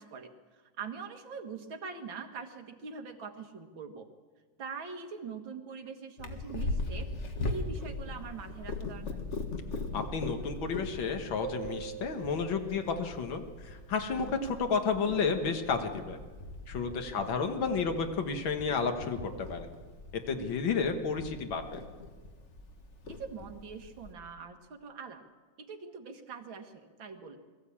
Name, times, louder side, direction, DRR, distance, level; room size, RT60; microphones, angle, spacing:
voice 1, 0.0-4.1 4.6-7.1 7.5-9.2 17.1-17.2 23.1-25.2 25.6-27.4, right 5 dB, 85° right, 5 dB, 2.4 m, -43 dB
Purr, 6.2-24.1, left 3 dB, 40° left, 1.7 m, -40 dB
voice 2, 9.9-16.2 16.7-19.7 20.3-21.8, left 5 dB, 85° left, 5 dB, 2.2 m, -31 dB
sound 1, 11.4-14.1, right 12 dB, 60° right, 0.7 m, -45 dB
22.0 x 14.5 x 8.6 m, 1.4 s
omnidirectional pair, 2.1 m